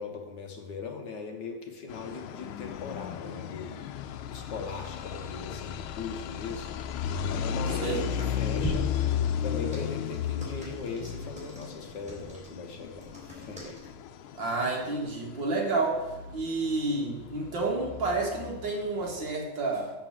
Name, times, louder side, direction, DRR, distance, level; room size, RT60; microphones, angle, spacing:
voice 1, 0.0-3.8 4.3-6.7 7.3-8.9 9.4-13.8, left 4 dB, 60° left, 3 dB, 1.6 m, -39 dB
sound 1, 1.9-19.3, left 8 dB, 85° left, 1.5 m, -35 dB
sound 2, 7.6-13.9, right 1 dB, 5° right, 3.7 m, -42 dB
voice 2, 14.4-16.0 16.3-19.9, right 3 dB, 60° right, -1 dB, 2.5 m, -30 dB
6.8 x 6.7 x 7.4 m, 1.0 s
omnidirectional pair, 2.3 m